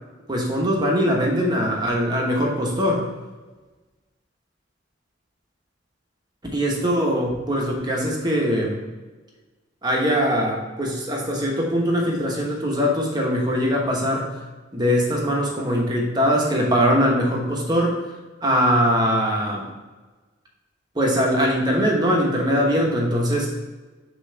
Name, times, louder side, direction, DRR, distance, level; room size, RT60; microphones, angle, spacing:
voice 1, 0.3-3.1 6.5-8.8 9.8-14.3 14.7-18.0 18.4-19.7 20.9-23.5, equal, 20° right, -1 dB, 1.1 m, -21 dB
6.7 x 3.1 x 5.6 m, 1.2 s
head